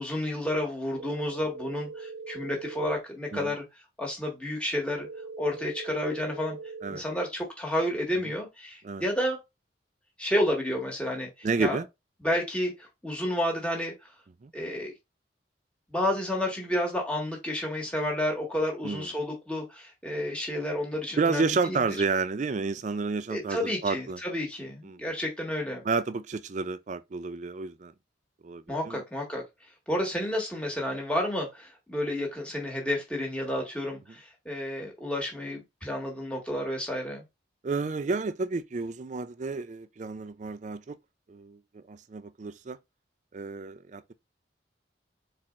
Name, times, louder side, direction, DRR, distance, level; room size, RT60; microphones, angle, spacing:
voice 1, 0.0-3.6 4.0-5.1 5.4-6.6 6.9-9.4 10.2-11.8 12.2-13.9 14.5-14.9 15.9-21.8 23.3-25.8 28.7-29.4 29.9-37.2, left 1 dB, 5° left, 1.5 m, -30 dB
sound 1, 1.0-3.0 5.0-7.0, right 4 dB, 85° right, 0.8 m, -41 dB
voice 2, 11.4-11.9 14.4-14.5 18.8-19.1 21.2-24.2 24.8-25.0 25.8-27.9 28.4-29.0 37.6-41.0 41.3-42.8 43.3-44.1, right 4 dB, 40° right, 0.4 m, -30 dB
4.2 x 4.2 x 2.4 m
head